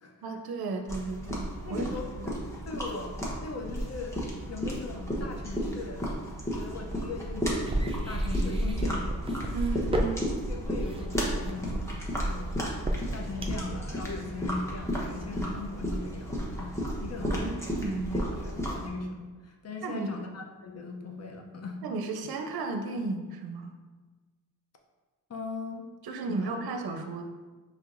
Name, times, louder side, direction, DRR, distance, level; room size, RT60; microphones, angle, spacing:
voice 1, 0.2-2.3 9.5-10.2 17.2-18.3 19.8-20.2 21.8-23.8 26.0-27.2, right 3 dB, 75° right, 4 dB, 0.5 m, -34 dB
sound 1, 0.9-18.9, equal, 5° left, 0.9 m, -34 dB
voice 2, 1.7-2.4 2.7-3.1 3.4-4.2 4.5-6.0 6.5-9.1 10.5-12.7 13.1-16.7 17.0-17.5 18.1-21.8 25.3-25.9 26.3-26.6, left 3 dB, 40° left, 2 dB, 0.6 m, -39 dB
sound 2, 7.7-13.7, right 1 dB, 15° right, 0.4 m, -31 dB
4.5 x 3.1 x 2.5 m, 1.3 s
cardioid pair, 80°, 38 cm